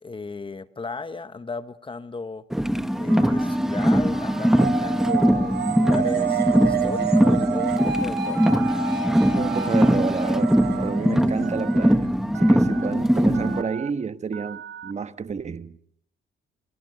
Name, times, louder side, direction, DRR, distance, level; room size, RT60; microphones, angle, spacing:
voice 1, 0.0-2.4 2.9-8.6, left 4 dB, 25° left, 1.1 m, -35 dB
Car, 2.5-13.6, equal, ahead, 1.4 m, -21 dB
Telephone, 3.1-3.6 4.1-4.7 5.2-5.8 6.2-6.8 7.2-7.8 8.3-8.9 9.4-10.0 10.4-10.9 11.4-11.9 12.3-12.9 13.3-13.9 14.3-14.9, right 10 dB, 80° right, 1.7 m, -40 dB
sound 1, 4.6-12.1, right 7 dB, 55° right, 6.3 m, -29 dB
voice 2, 9.3-15.8, right 5 dB, 35° right, 1.3 m, -30 dB
29.0 x 25.0 x 6.7 m
cardioid pair, 90°, 20 cm